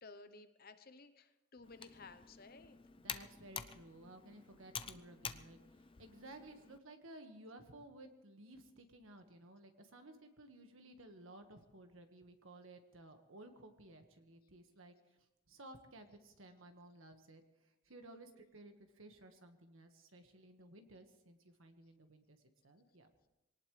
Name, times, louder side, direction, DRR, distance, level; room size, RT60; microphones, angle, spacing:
voice 1, 0.0-2.8, left 3 dB, 45° left, 10 dB, 0.8 m, -56 dB
Computer keyboard, 1.6-6.8, left 7 dB, 25° left, 0.4 m, -49 dB
voice 2, 3.0-14.9 15.5-22.4 22.6-23.1, right 1 dB, 70° right, 6 dB, 1.6 m, -57 dB
23.5 x 18.5 x 3.3 m, 0.98 s
head